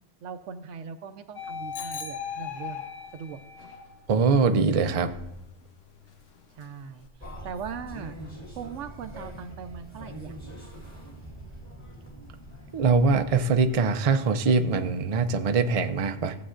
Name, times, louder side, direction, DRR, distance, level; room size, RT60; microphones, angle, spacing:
voice 1, 0.2-2.8 3.1-3.4 6.6-8.2 8.5-10.3, right 6 dB, 80° right, 10 dB, 1.0 m, -39 dB
sound 1, 1.4-4.2 4.7-7.1, left 6 dB, 85° left, 1.3 m, -40 dB
Bicycle bell, 1.7-3.0, left 5 dB, 55° left, 0.7 m, -42 dB
voice 2, 4.1-5.1 12.7-16.4, right 4 dB, 45° right, 7 dB, 0.4 m, -23 dB
sound 2, 7.2-13.8, right 1 dB, 15° left, 1.6 m, -43 dB
15.5 x 7.7 x 2.5 m, 0.94 s
omnidirectional pair, 1.3 m